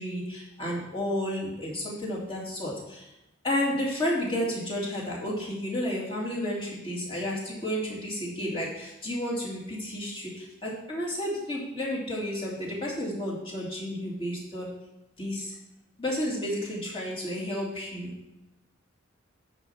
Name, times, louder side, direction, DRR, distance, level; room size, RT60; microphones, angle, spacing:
voice 1, 0.0-3.1 3.4-14.7 15.2-15.5 16.0-18.1, left 1 dB, 25° left, -4 dB, 2.4 m, -31 dB
10.5 x 4.3 x 7.1 m, 0.94 s
head